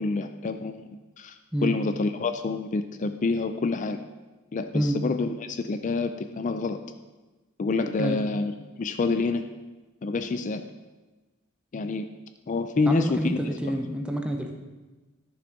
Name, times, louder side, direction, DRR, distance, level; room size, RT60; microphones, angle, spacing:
voice 1, 0.0-4.0 4.5-6.8 7.6-9.4 10.0-10.6 11.7-12.1 12.5-13.8, left 3 dB, 40° left, 9 dB, 0.4 m, -28 dB
voice 2, 12.9-14.6, right 1 dB, 5° right, 3 dB, 0.6 m, -28 dB
11.5 x 6.9 x 5.2 m, 1.2 s
head